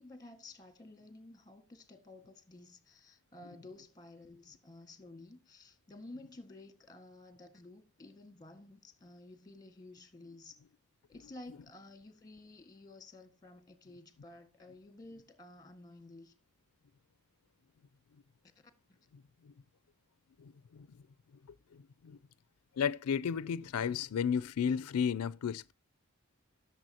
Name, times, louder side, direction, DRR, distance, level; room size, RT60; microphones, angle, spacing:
voice 1, 0.0-10.6 11.1-16.3, left 2 dB, 15° left, 1.6 m, -53 dB
voice 2, 19.1-19.5 20.4-21.0 21.7-22.2 22.8-25.7, left 7 dB, 90° left, 0.4 m, -34 dB
16.5 x 6.9 x 2.8 m
head